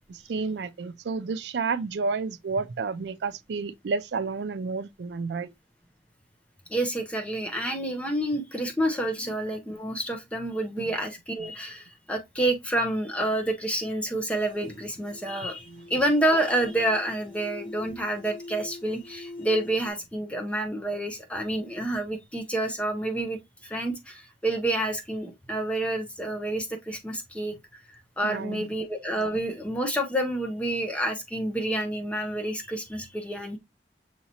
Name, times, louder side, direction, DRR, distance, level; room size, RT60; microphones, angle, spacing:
voice 1, 0.1-5.5 10.8-10.9 15.7-15.8 28.2-28.7, right 4 dB, 80° right, 0.4 m, -31 dB
voice 2, 6.7-27.5 28.2-33.6, right 1 dB, 5° left, 0.8 m, -28 dB
sound 1, 14.2-19.9, left 2 dB, 50° left, 3.2 m, -45 dB
6.4 x 2.9 x 2.8 m
head